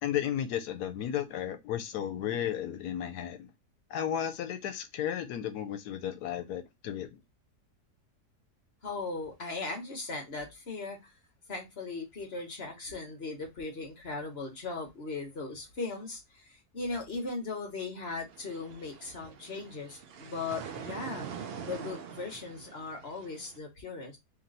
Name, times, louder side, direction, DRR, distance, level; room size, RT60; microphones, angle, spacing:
voice 1, 0.0-3.5 3.9-7.2, left 10 dB, 85° left, 1.1 m, -34 dB
voice 2, 8.8-11.1 11.5-24.2, left 3 dB, 45° left, 1.2 m, -38 dB
sound 1, 18.3-23.6, right 7 dB, 85° right, 0.5 m, -44 dB
3.2 x 2.9 x 3.8 m
omnidirectional pair, 1.7 m